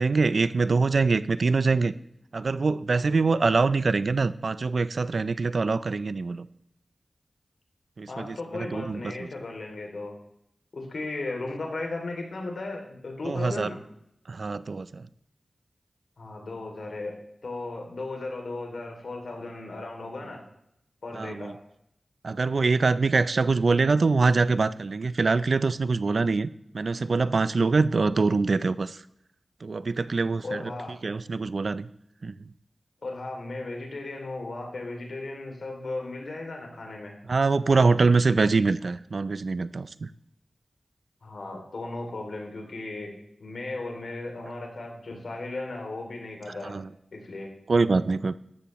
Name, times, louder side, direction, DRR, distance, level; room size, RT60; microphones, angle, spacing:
voice 1, 0.0-1.9 2.3-6.5 8.0-9.0 13.2-13.7 14.3-15.1 21.2-21.5 22.2-26.5 26.7-29.0 29.6-30.6 31.0-31.9 32.2-32.3 37.3-40.1 46.6-46.9 47.7-48.4, right 4 dB, 70° right, 16 dB, 0.5 m, -24 dB
voice 2, 8.1-10.1 10.7-13.8 16.2-20.4 21.0-21.6 30.4-31.0 33.0-37.1 41.2-43.1 43.4-46.8 47.1-47.5, left 2 dB, 75° left, 1 dB, 2.8 m, -36 dB
14.0 x 12.0 x 3.1 m, 0.77 s
cardioid pair, 45°, 0 cm